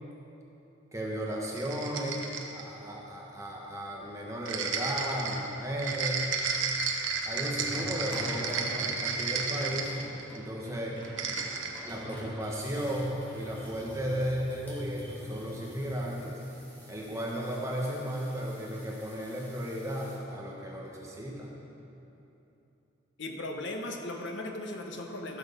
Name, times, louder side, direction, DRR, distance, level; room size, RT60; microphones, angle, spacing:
voice 1, 0.9-6.3 7.3-9.9 10.3-11.0 11.8-16.4 16.9-21.5, equal, 15° right, -3 dB, 1.3 m, -35 dB
sound 1, 1.4-2.7 4.4-10.4 11.0-11.9, right 5 dB, 70° right, 1.0 m, -33 dB
sound 2, 7.6-20.2, equal, 10° left, 2.4 m, -46 dB
voice 2, 23.2-25.4, left 1 dB, 65° left, 2 dB, 1.2 m, -37 dB
15.0 x 6.3 x 6.7 m, 2.9 s
head